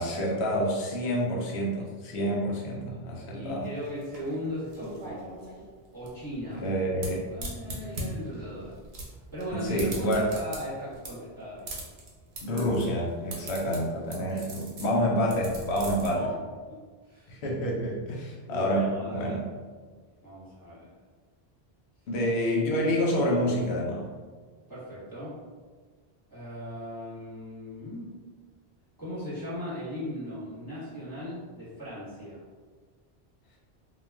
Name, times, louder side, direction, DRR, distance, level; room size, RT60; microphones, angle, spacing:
voice 1, 0.0-3.7 6.5-7.2 9.5-10.3 12.4-16.3 17.3-19.4 22.1-24.1, equal, 80° left, -2 dB, 0.9 m, -28 dB
voice 2, 3.3-5.4 5.9-6.6 7.3-8.7 9.3-11.7 14.3-14.5 14.8-15.0 16.1-16.4 16.7-16.8 17.1-17.3 18.5-19.4 20.2-20.9 24.7-25.4 26.3-28.1 29.0-32.4, equal, 20° right, -11 dB, 1.0 m, -38 dB
sound 1, 3.6-16.1, right 1 dB, 85° right, 1.0 m, -41 dB
2.3 x 2.1 x 3.3 m, 1.5 s
omnidirectional pair, 1.1 m